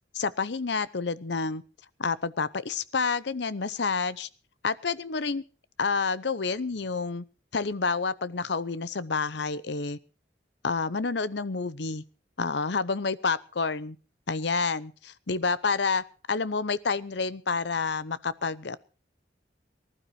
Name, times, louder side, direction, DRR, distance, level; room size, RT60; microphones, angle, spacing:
voice 1, 0.1-1.6 2.0-4.3 4.6-5.4 5.8-7.2 7.5-10.0 10.6-12.0 12.4-14.0 14.3-18.8, left 4 dB, 70° left, 17 dB, 0.8 m, -29 dB
19.0 x 12.0 x 4.8 m, 0.38 s
head